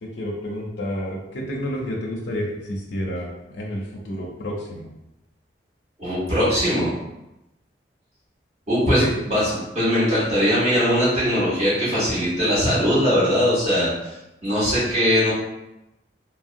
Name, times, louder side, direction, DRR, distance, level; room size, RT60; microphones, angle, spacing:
voice 1, 0.0-4.9 9.0-9.1, equal, 85° left, -2 dB, 0.5 m, -30 dB
voice 2, 6.0-6.9 8.7-14.1 14.4-15.3, equal, 40° right, -9 dB, 1.2 m, -20 dB
3.4 x 2.0 x 2.5 m, 0.91 s
head